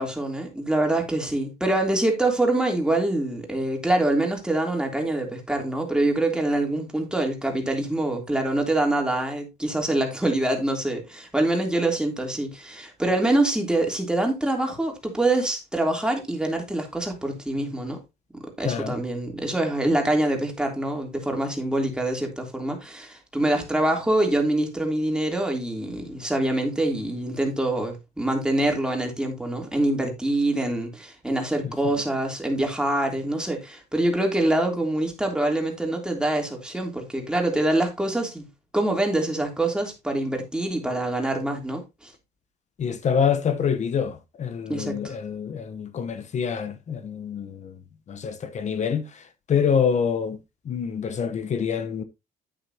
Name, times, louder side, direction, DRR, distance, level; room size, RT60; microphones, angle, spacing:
voice 1, 0.0-18.0 18.6-38.5 38.7-42.1 44.7-45.1, right 1 dB, 5° right, 3.2 m, -25 dB
voice 2, 18.6-18.9 42.8-47.5 48.1-49.0 49.5-50.4 50.7-52.0, left 7 dB, 45° left, 1.0 m, -26 dB
9.2 x 8.9 x 2.8 m
cardioid pair, 110°, 17 cm